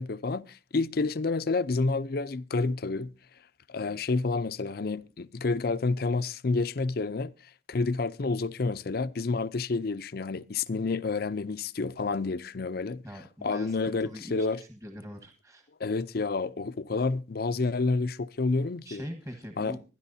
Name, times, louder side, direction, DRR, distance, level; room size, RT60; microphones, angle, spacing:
voice 1, 0.0-3.1 3.7-7.3 7.7-13.0 13.4-14.6 15.8-19.0 19.6-19.8, left 3 dB, 60° left, 0.6 m, -29 dB
voice 2, 13.0-15.7 18.8-19.8, equal, 20° right, 1.4 m, -43 dB
23.5 x 10.5 x 2.7 m
head